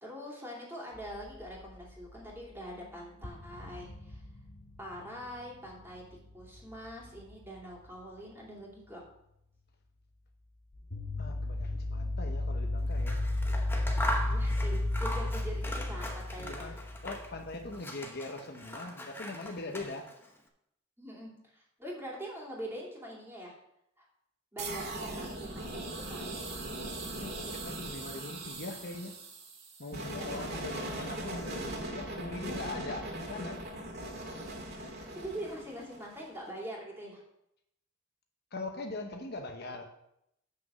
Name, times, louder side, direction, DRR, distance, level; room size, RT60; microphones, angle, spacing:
voice 1, 0.0-4.2 4.8-6.0 6.3-9.0 14.2-16.8 21.0-23.5 24.0-24.1 24.5-26.4 30.4-30.6 34.7-37.2, equal, 10° right, -3 dB, 2.7 m, -44 dB
sound 1, 0.9-2.4 2.8-2.9 3.2-7.6 10.7-17.8, left 2 dB, 85° left, 1.3 m, -34 dB
voice 2, 11.2-13.2 16.4-20.1 27.1-29.2 29.8-33.6 38.5-39.9, left 2 dB, 55° left, 4 dB, 0.9 m, -41 dB
Scissors, 12.9-17.4 17.7-20.3, equal, 10° left, 0.9 m, -40 dB
sound 2, 24.6-36.4, right 1 dB, 55° right, 1.9 m, -40 dB
7.7 x 6.4 x 6.2 m, 0.79 s
head